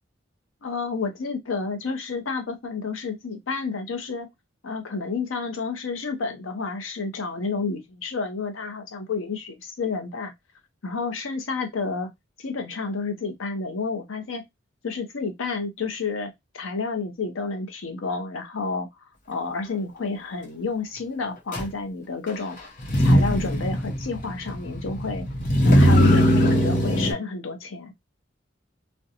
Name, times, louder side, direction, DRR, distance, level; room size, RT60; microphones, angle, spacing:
voice 1, 0.6-4.3 4.6-10.3 10.8-12.1 12.4-14.4 14.8-18.9 19.3-22.6 23.0-25.3 25.6-27.9, left 4 dB, 85° left, 0.7 m, -30 dB
Motor vehicle (road), 21.5-21.6 22.8-27.1, equal, 45° left, 0.7 m, -20 dB
2.5 x 2.2 x 2.7 m
head